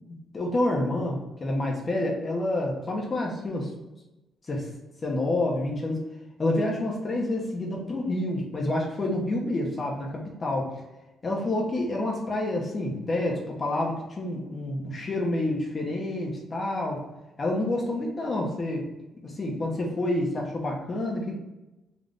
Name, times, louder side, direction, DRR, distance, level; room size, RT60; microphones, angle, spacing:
voice 1, 0.1-3.7 4.5-4.7 5.0-6.1 6.4-10.8 11.2-17.0 17.4-18.9 19.2-21.4, left 1 dB, 35° left, -2 dB, 1.0 m, -28 dB
4.0 x 2.7 x 3.5 m, 1.0 s
cardioid pair, 90°, 0 cm